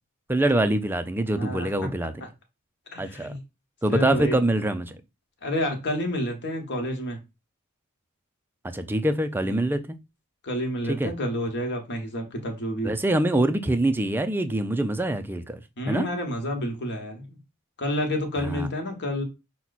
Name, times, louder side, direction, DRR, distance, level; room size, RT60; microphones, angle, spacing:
voice 1, 0.3-2.1 3.0-3.3 3.8-5.0 8.7-10.0 10.9-11.1 12.8-15.6 15.9-16.1 18.4-18.7, right 1 dB, 10° right, 0.4 m, -24 dB
voice 2, 1.3-1.9 2.2-2.3 2.9-3.4 3.9-4.4 5.4-7.2 9.4-9.7 10.4-12.9 15.8-17.4 17.8-19.2, equal, 50° left, 1.2 m, -29 dB
5.9 x 2.2 x 4.0 m
head